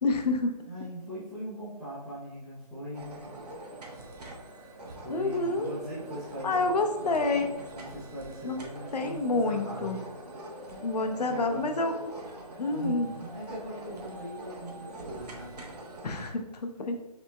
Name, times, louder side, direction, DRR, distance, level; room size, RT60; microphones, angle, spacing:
voice 1, 0.0-0.5 5.1-5.7 6.4-7.5 8.4-8.6 8.9-10.0 10.8-11.9 12.6-13.1 16.0-17.0, left 3 dB, 75° left, 5 dB, 0.8 m, -28 dB
voice 2, 0.7-3.4 5.0-9.9 11.3-11.8 12.7-15.6, equal, ahead, -12 dB, 0.8 m, -41 dB
sound 1, 2.9-16.3, right 2 dB, 70° right, 1.0 m, -43 dB
5.8 x 3.4 x 2.2 m, 1.0 s
hypercardioid pair, 160°, 21 cm